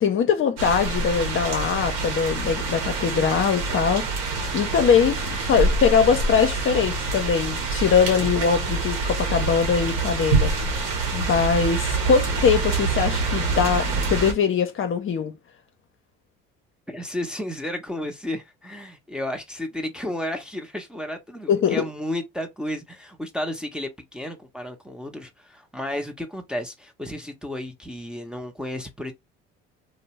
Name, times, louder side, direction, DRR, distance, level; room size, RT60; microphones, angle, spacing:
voice 1, 0.0-15.4 21.5-21.8, left 7 dB, 45° left, 0.6 m, -22 dB
sound 1, 0.6-14.3, right 3 dB, 85° right, 0.9 m, -26 dB
voice 2, 16.9-29.1, left 1 dB, 5° right, 0.6 m, -32 dB
2.6 x 2.0 x 2.9 m
supercardioid pair, 70°, 30 cm